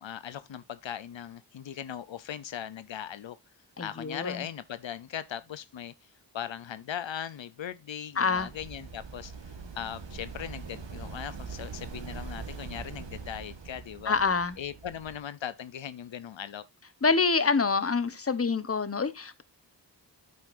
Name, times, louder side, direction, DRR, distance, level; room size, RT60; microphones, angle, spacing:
voice 1, 0.0-3.4 3.8-14.2 14.6-16.7, left 9 dB, 90° left, 0.7 m, -39 dB
voice 2, 3.8-4.4 8.2-8.5 14.1-14.6 17.0-19.4, left 4 dB, 30° left, 1.0 m, -26 dB
sound 1, 8.3-15.2, right 5 dB, 80° right, 1.5 m, -42 dB
9.1 x 7.8 x 2.5 m
wide cardioid pair, 55°, 44 cm